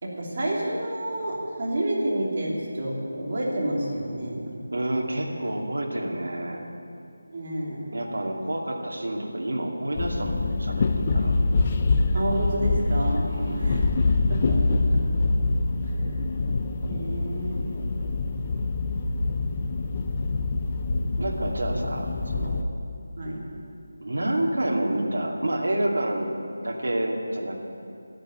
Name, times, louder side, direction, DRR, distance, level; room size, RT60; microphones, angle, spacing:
voice 1, 0.0-4.5 7.3-7.8 12.1-13.8 14.3-14.8 16.9-17.5 23.2-23.4, right 1 dB, 35° right, -3 dB, 2.9 m, -29 dB
voice 2, 4.7-6.6 7.9-11.3 13.2-13.9 21.2-22.6 24.0-27.6, right 1 dB, 70° right, 0 dB, 2.5 m, -29 dB
sound 1, 9.9-22.6, left 3 dB, 20° left, 0.5 m, -25 dB
13.0 x 10.0 x 9.3 m, 2.5 s
figure-of-eight pair, 175°, 0 cm